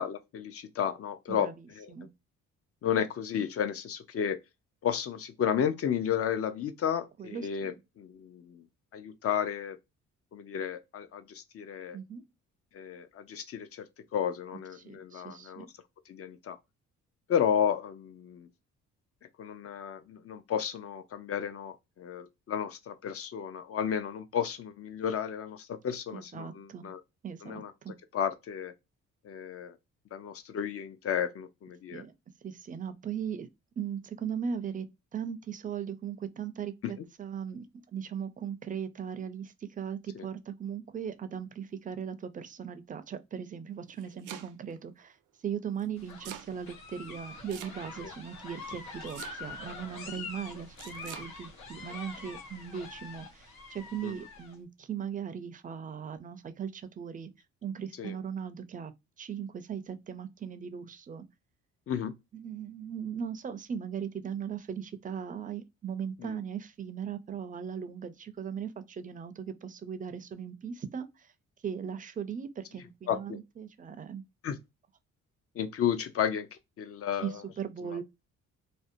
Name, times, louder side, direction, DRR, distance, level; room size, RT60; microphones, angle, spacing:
voice 1, 0.0-1.5 1.8-1.9 2.8-4.4 4.8-8.6 8.9-9.8 10.3-12.0 12.7-13.9 14.1-15.7 16.1-16.6 17.3-18.5 19.4-27.0 27.4-27.7 28.1-28.7 29.2-29.8 30.1-32.0 36.8-36.9 40.1-40.3 54.0-54.1 58.0-58.1 61.9-62.1 66.2-66.4 73.1-73.4 74.4-74.6 75.6-77.4 77.8-78.0, left 8 dB, 50° left, 0.5 m, -32 dB
voice 2, 1.3-2.1 7.2-7.8 11.9-12.2 14.8-15.7 26.1-26.9 27.2-27.9 31.9-32.1 32.4-33.5 33.8-37.7 37.9-45.2 45.4-57.3 57.6-58.9 59.2-61.3 62.3-71.3 71.6-74.2 77.2-78.0, right 7 dB, 30° right, 0.4 m, -38 dB
Domestic sounds home sounds, 43.7-44.8 45.8-46.5 47.5-48.1 49.1-49.7 50.8-51.3, right 10 dB, 85° right, 0.5 m, -45 dB
sound 1, 46.0-54.5, left 3 dB, 90° left, 1.2 m, -45 dB
2.6 x 2.1 x 2.5 m
cardioid pair, 90°, 30 cm